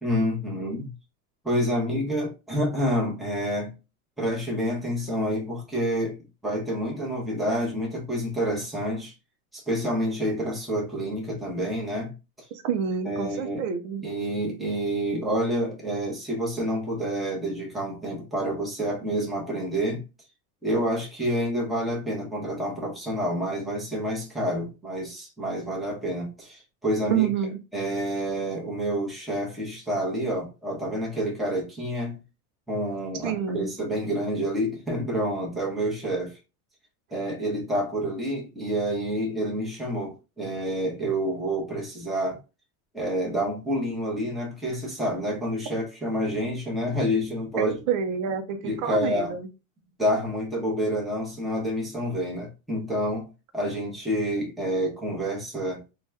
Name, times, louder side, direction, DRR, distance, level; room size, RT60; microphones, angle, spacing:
voice 1, 0.0-0.9 1.4-3.7 4.2-6.2 6.4-9.1 9.5-12.1 13.0-13.6 14.0-20.0 20.6-27.3 27.7-32.2 32.7-36.4 37.1-42.4 42.9-47.8 48.6-49.4 50.0-53.3 53.5-55.8, equal, ahead, 0.8 m, -28 dB
voice 2, 12.6-14.0 27.1-27.6 33.2-33.7 47.6-49.5, right 7 dB, 60° right, 0.6 m, -28 dB
2.7 x 2.3 x 3.3 m
supercardioid pair, 150°, 44 cm